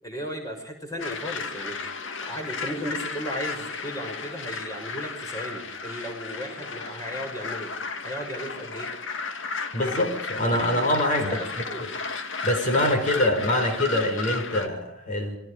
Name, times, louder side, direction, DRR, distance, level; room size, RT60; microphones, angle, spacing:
voice 1, 0.0-1.8 2.2-7.7 8.0-8.9 11.3-11.8, equal, 15° left, 4 dB, 6.5 m, -35 dB
sound 1, 1.0-14.7, left 4 dB, 65° left, 2.2 m, -34 dB
voice 2, 9.7-11.4 11.8-11.9 12.4-15.4, left 1 dB, 40° left, 5 dB, 4.9 m, -24 dB
29.0 x 22.0 x 5.1 m, 0.78 s
head